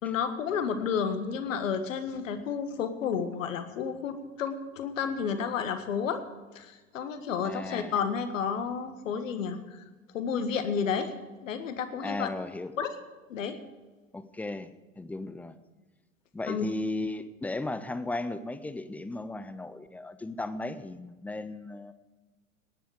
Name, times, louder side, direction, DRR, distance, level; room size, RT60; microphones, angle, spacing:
voice 1, 0.0-6.3 6.5-9.8 10.1-11.1 11.4-12.3 12.8-12.9 13.3-13.6 16.5-16.7, left 6 dB, 65° left, 8 dB, 1.7 m, -31 dB
voice 2, 7.4-7.9 12.0-12.7 14.1-14.7 15.0-15.6 16.3-21.9, left 2 dB, 5° left, 12 dB, 0.4 m, -35 dB
18.5 x 10.0 x 5.0 m, 1.2 s
figure-of-eight pair, 90°, 42 cm